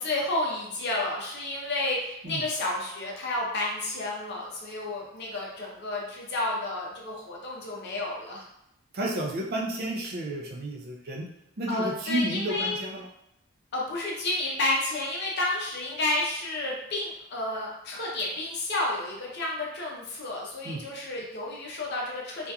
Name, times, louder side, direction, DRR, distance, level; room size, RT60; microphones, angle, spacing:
voice 1, 0.0-8.4 11.7-12.8 13.7-22.5, left 2 dB, 50° left, -2 dB, 0.6 m, -31 dB
voice 2, 8.9-11.3 11.6-13.1 20.6-20.8, right 1 dB, 45° right, -2 dB, 0.4 m, -31 dB
2.7 x 2.4 x 2.2 m, 0.81 s
head